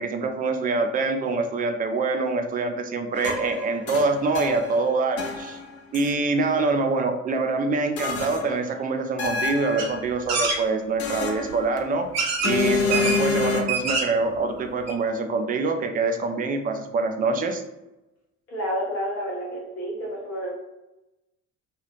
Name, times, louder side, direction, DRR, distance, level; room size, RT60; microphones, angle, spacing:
voice 1, 0.0-5.6 5.9-12.1 12.4-17.6, right 3 dB, 25° right, 5 dB, 0.4 m, -25 dB
sound 1, 3.1-4.8 5.2-6.1 8.0-8.6 9.2-10.0 11.0-11.9 12.4-13.6, left 4 dB, 40° left, 0.6 m, -27 dB
sound 2, 9.8-9.9 10.3-10.6 11.5-11.6 12.1-12.6 12.9-13.2 13.6-14.2 14.6-14.7 14.9-15.0, right 4 dB, 45° right, 0.7 m, -25 dB
voice 2, 18.5-20.6, equal, 80° left, -5 dB, 0.8 m, -30 dB
2.4 x 2.3 x 3.1 m, 0.98 s
figure-of-eight pair, 50°, 39 cm